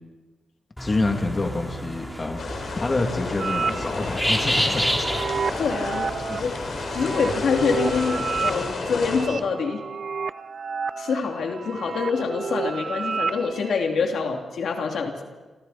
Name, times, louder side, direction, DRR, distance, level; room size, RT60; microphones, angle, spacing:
voice 1, 0.8-4.9 6.3-6.4, left 2 dB, 30° left, 2 dB, 2.8 m, -27 dB
sound 1, 0.8-8.7, equal, ahead, 3.1 m, -31 dB
sound 2, 2.4-9.3, left 4 dB, 60° left, 4.5 m, -31 dB
sound 3, 3.4-13.7, right 5 dB, 50° right, 0.6 m, -31 dB
voice 2, 5.6-6.5 6.9-9.8 11.0-15.2, left 5 dB, 80° left, 2 dB, 2.9 m, -26 dB
29.0 x 27.0 x 4.3 m, 1.3 s
wide cardioid pair, 130°, 0 cm